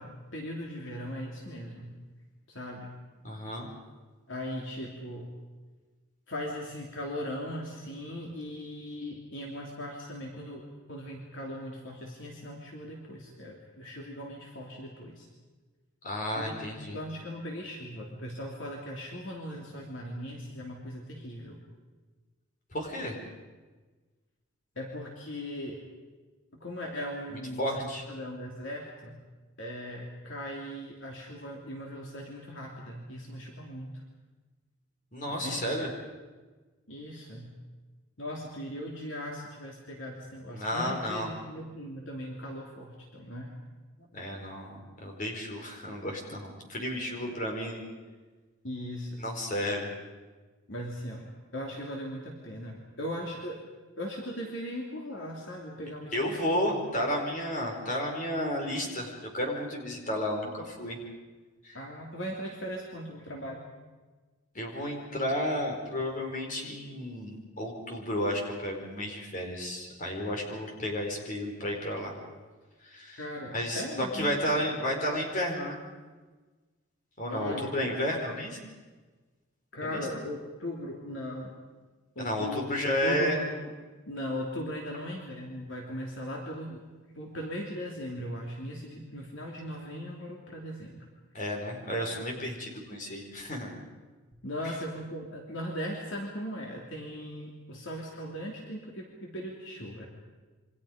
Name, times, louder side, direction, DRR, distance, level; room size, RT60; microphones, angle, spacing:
voice 1, 0.0-1.9 2.5-3.0 4.3-5.3 6.3-15.3 16.3-21.6 24.7-25.8 26.6-29.2 29.6-34.0 35.3-35.8 36.9-37.6 38.2-43.5 48.6-49.2 50.7-53.6 54.0-56.9 61.7-63.6 73.2-74.6 77.3-77.9 79.7-81.5 82.1-83.7 84.1-86.8 87.1-91.1 94.4-100.1, equal, 60° left, -1 dB, 3.2 m, -39 dB
voice 2, 3.2-3.7 16.0-17.0 22.7-23.2 27.6-28.0 35.1-35.9 40.5-41.3 44.1-47.8 49.2-49.9 56.1-61.0 61.6-61.8 64.5-72.1 72.8-73.2 73.5-75.8 77.2-78.6 79.8-80.1 82.2-83.4 91.3-93.7, equal, 40° left, 1 dB, 4.7 m, -32 dB
28.0 x 25.0 x 5.2 m, 1.3 s
head